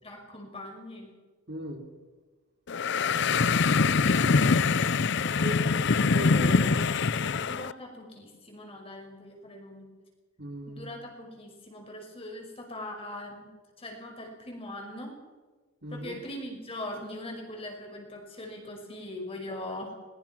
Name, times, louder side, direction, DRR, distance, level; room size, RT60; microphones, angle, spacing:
voice 1, 0.0-1.1 3.9-4.3 5.1-5.6 7.4-9.9 10.7-13.5 13.8-15.2 15.9-20.0, left 1 dB, 25° left, 2 dB, 5.5 m, -41 dB
voice 2, 1.5-1.8 5.4-5.6 5.9-6.8 10.4-10.9 15.8-16.2, equal, 50° right, 3 dB, 3.1 m, -37 dB
sound 1, 2.7-7.7, left 4 dB, 55° left, 0.5 m, -24 dB
21.5 x 21.0 x 6.0 m, 1.3 s
head